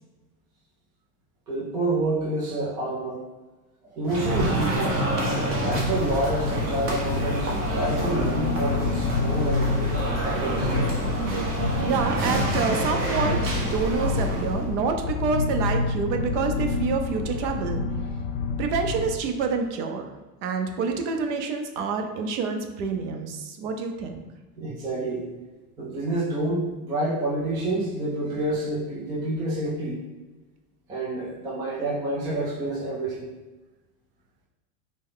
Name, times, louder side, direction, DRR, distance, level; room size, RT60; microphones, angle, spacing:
voice 1, 1.5-3.2 3.8-5.0 5.3-9.9 10.2-10.7 24.6-25.3 25.8-30.0 30.9-33.3, right 2 dB, 10° right, -5 dB, 0.3 m, -28 dB
sound 1, 4.0-14.7, right 1 dB, 30° right, 1.0 m, -28 dB
sound 2, 4.2-9.8, left 2 dB, 20° left, 0.7 m, -46 dB
sound 3, 5.5-19.2, left 4 dB, 60° left, 0.6 m, -29 dB
voice 2, 11.8-17.8 18.6-20.1 20.4-24.2, right 5 dB, 50° right, 5 dB, 0.7 m, -27 dB
5.1 x 2.2 x 3.8 m, 1.2 s
hypercardioid pair, 125°, 48 cm